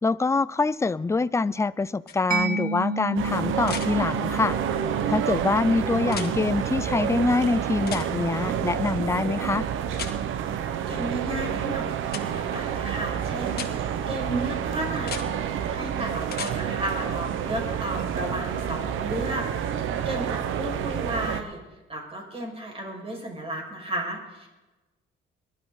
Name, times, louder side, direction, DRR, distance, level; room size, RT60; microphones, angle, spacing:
voice 1, 0.0-4.6 5.1-9.7, left 3 dB, 15° left, 18 dB, 0.4 m, -25 dB
sound 1, 2.1-2.2 3.6-3.9 6.0-6.3 7.9-8.1 9.9-10.1 12.1-12.2 13.5-13.7 15.0-15.3 16.2-16.5 18.6-18.7, left 7 dB, 50° left, 1.9 m, -35 dB
Mallet percussion, 2.3-9.7, right 3 dB, 45° right, 2.4 m, -34 dB
sound 2, 3.2-21.4, right 9 dB, 85° right, 1.2 m, -29 dB
voice 2, 10.9-21.6 21.9-24.5, right 1 dB, 30° right, 0 dB, 5.7 m, -34 dB
22.5 x 12.0 x 4.0 m, 1.1 s
cardioid pair, 90°, 20 cm